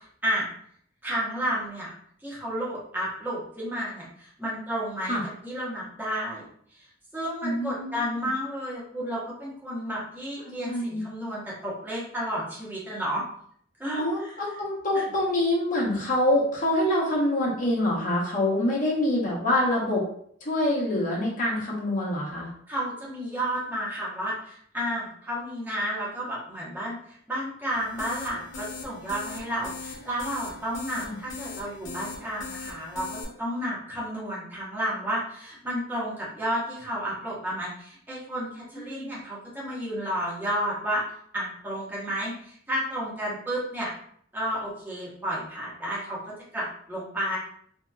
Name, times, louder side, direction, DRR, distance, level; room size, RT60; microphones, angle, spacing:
voice 1, 1.0-1.9 2.2-5.2 5.4-6.4 7.1-13.2 13.8-14.3 14.9-15.0 22.7-41.0 41.3-43.9 44.3-46.2 46.5-47.4, equal, 10° right, -7 dB, 1.0 m, -31 dB
voice 2, 7.4-8.3 10.6-11.0 14.0-20.0 20.4-22.5 31.0-31.1 38.8-39.2, left 1 dB, 45° left, -4 dB, 1.0 m, -26 dB
sound 1, 27.7-33.2, left 4 dB, 85° left, 0.6 m, -40 dB
2.8 x 2.8 x 2.3 m, 0.64 s
head